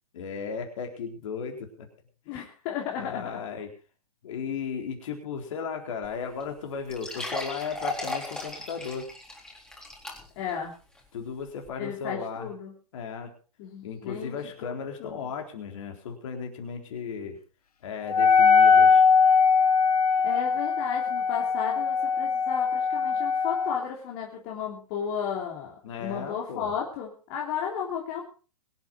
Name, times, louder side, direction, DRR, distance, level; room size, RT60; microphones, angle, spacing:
voice 1, 0.1-1.9 3.0-3.7 4.2-9.1 11.1-12.5 12.9-13.3 13.8-17.4 17.8-19.1 25.8-26.7, left 6 dB, 55° left, 3 dB, 4.0 m, -35 dB
voice 2, 2.3-3.4 10.3-10.7 11.8-12.7 13.6-14.7 15.0-15.2 20.2-28.2, left 8 dB, 40° left, -1 dB, 3.3 m, -34 dB
sound 1, 6.0-6.1 6.4-6.5 6.9-10.5 11.0-11.1 11.7-11.8, left 2 dB, 5° left, 3.8 m, -36 dB
Wind instrument woodwind instrument, 18.1-23.8, left 5 dB, 75° left, 1.4 m, -21 dB
23.5 x 8.2 x 4.5 m, 0.37 s
hypercardioid pair, 120°, 20 cm